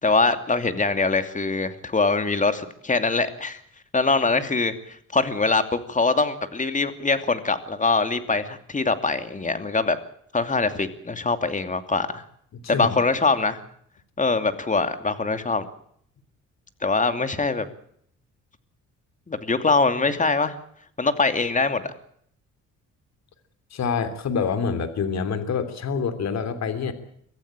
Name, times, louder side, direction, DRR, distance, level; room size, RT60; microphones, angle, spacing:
voice 1, 0.0-3.6 3.9-4.7 5.1-10.0 10.3-12.2 12.7-13.6 14.2-15.7 16.8-17.7 19.3-20.5 21.0-21.9, left 3 dB, 25° left, 9 dB, 2.7 m, -23 dB
voice 2, 23.7-26.9, left 6 dB, 60° left, 10 dB, 3.2 m, -26 dB
24.0 x 15.0 x 8.9 m, 0.67 s
cardioid pair, 90°, 30 cm